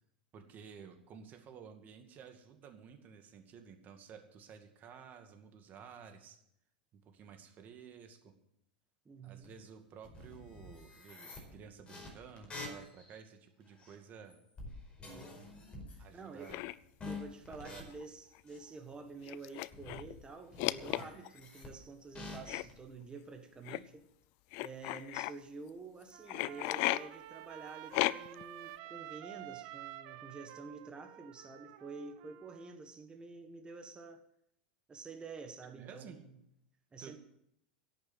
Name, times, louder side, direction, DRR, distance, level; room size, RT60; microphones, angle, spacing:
voice 1, 0.3-6.4 6.9-8.3 9.2-14.4 16.0-16.6 17.5-17.9 35.6-36.2 37.0-37.2, right 7 dB, 35° right, 6 dB, 2.2 m, -53 dB
voice 2, 9.0-9.5 16.1-16.5 17.0-24.1 24.6-34.2 34.9-36.4 36.9-37.2, right 4 dB, 20° right, 6 dB, 1.5 m, -49 dB
sound 1, 9.4-9.5 10.0-13.2 13.7-13.9 14.3-16.0 16.4-16.7 17.0-17.8 18.5-18.7 19.5-20.2 20.5-21.7 22.1-22.8, left 3 dB, 20° left, 4.8 m, -48 dB
sound 2, 16.5-16.7 17.9-18.0 18.3-18.4 19.2-20.1 20.6-21.4 22.5-22.6 23.6-23.8 24.5-25.3 26.3-27.0 27.9-28.4, left 20 dB, 50° left, 0.5 m, -34 dB
Trumpet, 26.1-32.8, right 15 dB, 55° right, 0.9 m, -50 dB
11.5 x 8.8 x 7.9 m, 0.75 s
hypercardioid pair, 95°, 5 cm